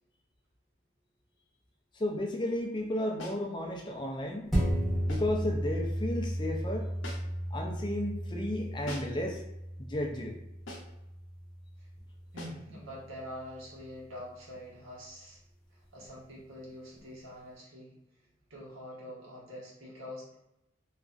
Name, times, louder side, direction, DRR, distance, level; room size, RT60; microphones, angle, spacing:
voice 1, 1.9-4.5 5.1-6.9 7.5-9.4 9.8-10.4, left 1 dB, 25° left, 0 dB, 0.4 m, -33 dB
sound 1, 3.2-3.5 5.1-5.4 7.0-7.5 8.9-9.3 10.7-11.0 12.4-12.7, left 1 dB, 60° left, 0.7 m, -44 dB
sound 2, 4.5-13.3 13.8-13.9, equal, ahead, 0.8 m, -34 dB
voice 2, 12.3-15.4 15.7-18.0 18.5-20.3, left 1 dB, 85° right, -5 dB, 1.1 m, -45 dB
2.9 x 2.5 x 2.4 m, 0.90 s
head